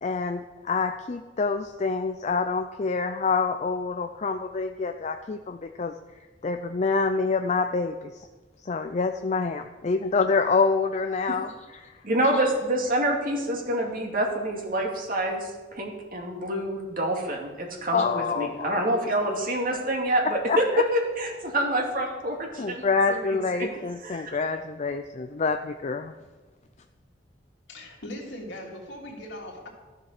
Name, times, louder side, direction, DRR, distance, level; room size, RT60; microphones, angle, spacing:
voice 1, 0.0-5.9 6.4-8.3 8.7-11.5 17.9-18.9 20.5-20.8 22.6-26.1, left 4 dB, 40° left, 7 dB, 0.5 m, -26 dB
voice 2, 12.0-22.8 23.1-23.7 24.0-24.3, right 1 dB, 50° right, 1 dB, 2.4 m, -27 dB
voice 3, 27.7-29.7, left 1 dB, 70° left, -1 dB, 2.9 m, -39 dB
13.5 x 7.2 x 6.6 m, 1.3 s
head